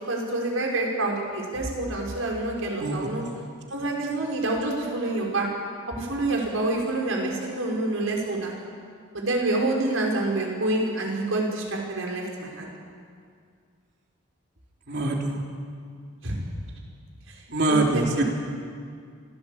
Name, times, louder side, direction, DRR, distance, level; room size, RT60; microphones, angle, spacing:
voice 1, 0.1-3.3 3.7-5.5 5.9-8.6 9.1-12.7 16.2-16.4 17.7-17.8 18.2-18.3, right 2 dB, 75° right, -1 dB, 5.4 m, -27 dB
voice 2, 2.8-3.4 14.9-15.4 17.5-18.2, right 2 dB, 55° right, 1 dB, 3.4 m, -25 dB
26.0 x 17.5 x 8.6 m, 2.2 s
head